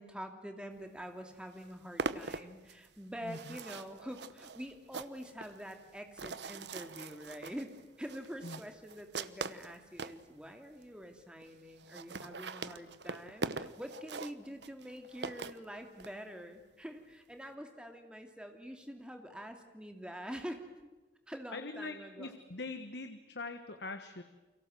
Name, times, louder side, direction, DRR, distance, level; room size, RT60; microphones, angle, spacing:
voice 1, 0.0-20.6 21.3-22.4, equal, 5° right, 5 dB, 2.6 m, -46 dB
sound 1, 1.0-1.1 1.4-10.2 10.8-10.9 11.1-11.2 11.4-11.5 11.7-16.1, right 4 dB, 80° right, 1.0 m, -42 dB
voice 2, 3.2-3.6 8.4-8.6 21.5-24.2, left 3 dB, 75° left, 8 dB, 1.5 m, -43 dB
29.5 x 24.0 x 7.8 m, 1.2 s
head